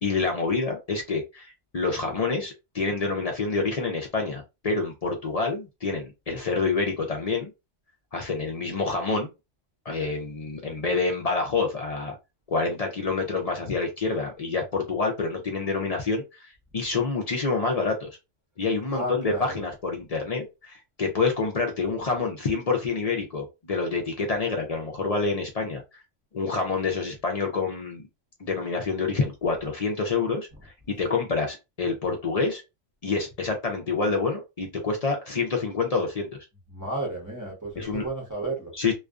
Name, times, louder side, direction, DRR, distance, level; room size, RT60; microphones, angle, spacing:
voice 1, 0.0-7.5 8.1-9.3 9.9-12.2 12.5-18.1 18.6-26.0 26.3-28.0 28.4-32.6 33.0-36.3 37.8-38.1 38.7-38.9, left 4 dB, 55° left, 0.4 m, -27 dB
voice 2, 18.9-19.6 36.7-38.7, right 2 dB, 15° right, 0.8 m, -32 dB
2.4 x 2.3 x 2.3 m
omnidirectional pair, 1.3 m